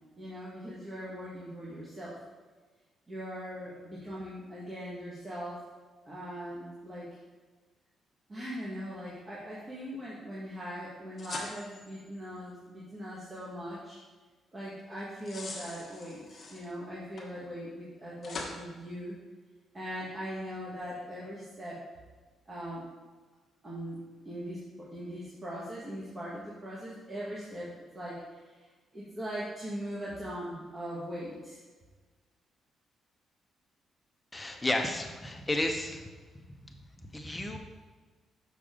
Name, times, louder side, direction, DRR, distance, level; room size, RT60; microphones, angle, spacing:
voice 1, 0.2-2.1 3.1-5.6 6.0-7.1 8.3-14.0 14.5-19.2 19.7-21.8 22.4-22.8 23.6-24.0 24.2-24.6 24.9-27.7 27.9-28.7 28.9-31.6, equal, 25° right, -8 dB, 1.6 m, -40 dB
sound 1, 11.2-12.2 15.0-16.7 17.2-17.3 18.2-18.6, left 3 dB, 40° left, 1.4 m, -42 dB
voice 2, 34.3-36.0 37.1-37.6, left 1 dB, 10° left, 3 dB, 0.8 m, -32 dB
6.6 x 6.0 x 3.7 m, 1.3 s
cardioid pair, 110°, 0 cm